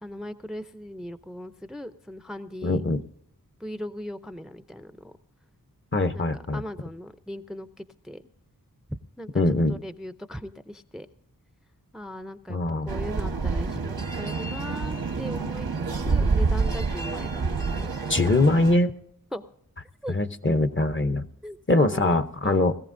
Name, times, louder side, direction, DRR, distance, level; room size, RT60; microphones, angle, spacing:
voice 1, 0.0-2.8 3.6-5.1 6.1-8.2 9.2-11.1 11.9-15.7 16.1-17.4 17.8-17.9 19.3-19.4 20.0-20.2 21.4-22.2 22.4-22.7, equal, ahead, 11 dB, 0.5 m, -38 dB
voice 2, 2.6-3.0 5.9-6.6 9.4-9.8 12.5-12.9 18.1-19.0 20.1-21.3 21.7-22.7, left 2 dB, 35° left, 10 dB, 0.8 m, -22 dB
sound 1, 12.9-18.8, right 4 dB, 90° right, 1.2 m, -27 dB
21.0 x 14.5 x 2.6 m, 0.71 s
wide cardioid pair, 60°, 35 cm